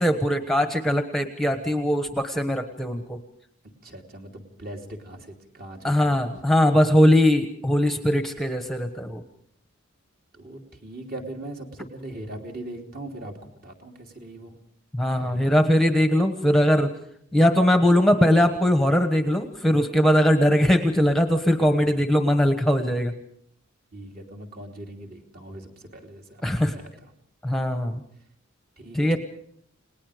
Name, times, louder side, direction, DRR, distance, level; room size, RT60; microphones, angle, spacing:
voice 1, 0.0-3.2 5.8-9.2 14.9-16.9 17.3-23.1 26.4-26.7 27.4-28.0 28.9-29.2, equal, ahead, 7 dB, 1.1 m, -20 dB
voice 2, 3.6-6.3 10.3-14.5 15.1-15.5 21.9-22.0 23.9-26.7 28.8-29.2, right 1 dB, 45° right, 2 dB, 3.1 m, -40 dB
29.5 x 19.0 x 5.0 m, 0.62 s
head